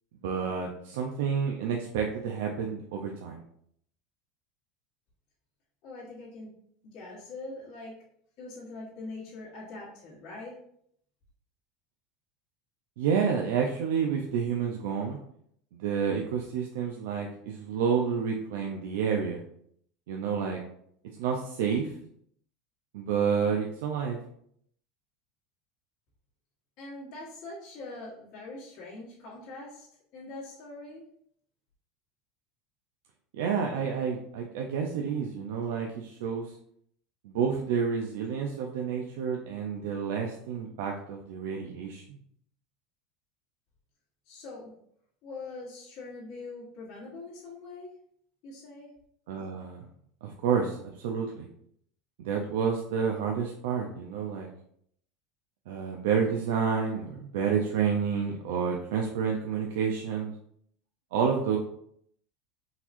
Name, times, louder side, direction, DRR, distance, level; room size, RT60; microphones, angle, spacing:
voice 1, 0.2-3.4 13.0-15.2 15.8-19.4 20.1-20.6 21.2-21.9 22.9-24.2 33.3-36.5 37.2-42.0 49.3-49.9 50.2-50.8 51.0-51.5 52.2-54.5 55.7-60.3 61.1-61.6, right 6 dB, 80° right, 1 dB, 0.4 m, -29 dB
voice 2, 5.8-6.5 6.8-7.9 8.4-10.6 26.8-29.9 30.1-31.0 44.2-44.7 45.2-47.9 48.4-48.9, left 2 dB, 55° left, -8 dB, 1.4 m, -43 dB
3.9 x 2.9 x 2.5 m, 0.68 s
supercardioid pair, 125°, 0 cm